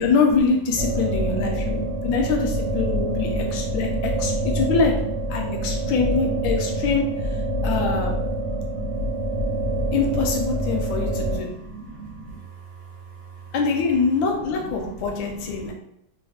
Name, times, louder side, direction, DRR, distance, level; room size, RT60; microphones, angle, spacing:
voice 1, 0.0-4.9 5.3-7.0 7.6-8.2 9.9-11.5 13.5-15.7, left 4 dB, 80° left, 2 dB, 1.4 m, -24 dB
sound 1, 0.8-11.4, right 1 dB, 55° right, 0.9 m, -26 dB
voice 2, 5.4-5.9 7.6-7.8 8.4-9.0 11.4-12.3 14.6-14.7, right 2 dB, 70° right, 0 dB, 1.2 m, -39 dB
3.1 x 2.5 x 3.4 m, 0.75 s
omnidirectional pair, 2.1 m